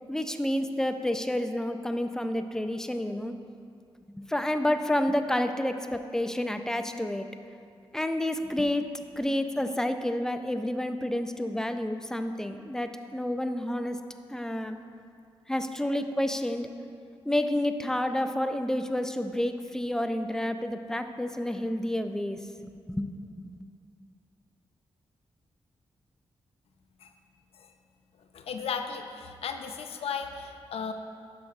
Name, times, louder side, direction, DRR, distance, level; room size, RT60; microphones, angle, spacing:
voice 1, 0.1-3.3 4.1-7.3 7.9-8.9 9.1-14.0 14.3-14.8 15.5-16.7 17.3-23.6, left 1 dB, 5° left, 7 dB, 0.4 m, -29 dB
voice 2, 28.2-30.9, left 6 dB, 85° left, 6 dB, 0.5 m, -36 dB
11.0 x 6.0 x 2.4 m, 2.4 s
wide cardioid pair, 105°, 10 cm